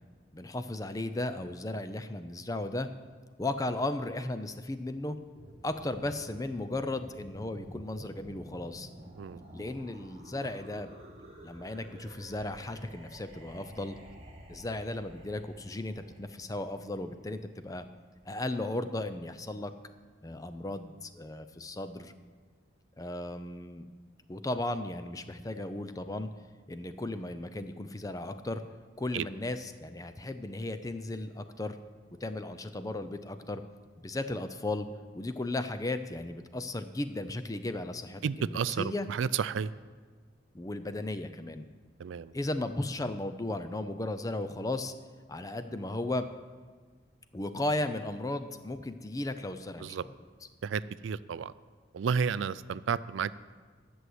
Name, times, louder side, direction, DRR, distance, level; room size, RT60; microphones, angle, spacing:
voice 1, 0.3-2.9 3.4-5.2 5.6-8.9 9.5-11.0 11.4-14.0 14.5-17.8 18.3-19.7 20.2-22.1 23.0-23.9 24.3-26.3 26.7-28.6 29.0-31.8 32.2-33.6 34.0-34.9 35.1-39.1 40.5-41.7 42.3-44.9 45.3-46.3 47.3-50.1, left 2 dB, 20° left, 10 dB, 0.5 m, -35 dB
sound 1, 5.3-18.1, right 1 dB, 35° right, 1.5 m, -51 dB
voice 2, 38.2-39.7 42.0-42.3 49.8-50.0 50.6-51.5 51.9-53.5, right 6 dB, 90° right, 17 dB, 0.4 m, -32 dB
11.0 x 6.3 x 7.9 m, 1.5 s
head